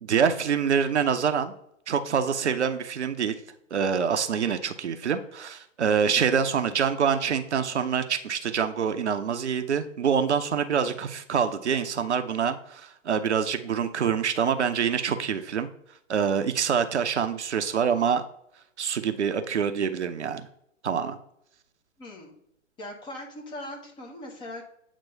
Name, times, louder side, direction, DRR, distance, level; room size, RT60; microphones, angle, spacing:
voice 1, 0.0-1.5 1.9-3.4 3.7-15.7 16.1-18.3 18.8-20.5 20.8-21.2, right 7 dB, 60° right, 8 dB, 0.7 m, -26 dB
voice 2, 22.0-22.3 22.8-24.6, left 1 dB, 10° left, 0 dB, 0.9 m, -40 dB
8.2 x 3.0 x 5.5 m, 0.74 s
figure-of-eight pair, 120°, 39 cm